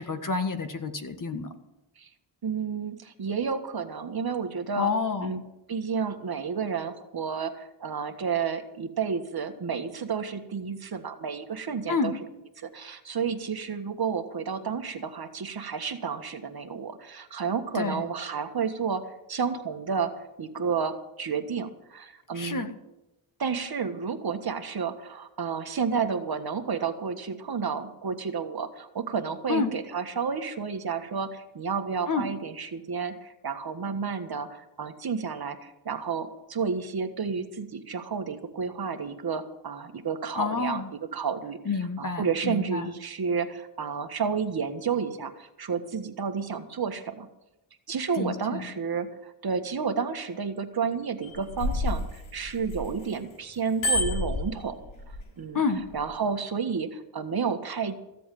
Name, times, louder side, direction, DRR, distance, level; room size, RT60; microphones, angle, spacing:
voice 1, 0.0-1.5 4.8-5.3 11.9-12.1 17.7-18.0 22.3-22.7 29.5-29.7 32.1-32.3 40.3-40.9 41.6-42.9 48.2-48.6 55.5-55.8, left 4 dB, 40° left, 8 dB, 1.7 m, -29 dB
voice 2, 2.4-4.9 5.2-5.4 5.7-12.1 12.6-19.0 19.3-20.1 20.4-22.7 23.4-40.8 41.1-41.6 42.0-47.3 47.9-54.8 55.4-55.6 55.9-58.0, right 6 dB, 50° right, 7 dB, 1.6 m, -31 dB
Bicycle bell, 51.2-53.1 53.5-55.2 55.8-56.0, left 2 dB, 85° left, 7.4 m, -29 dB
15.5 x 7.7 x 9.1 m, 0.94 s
cardioid pair, 95°, 47 cm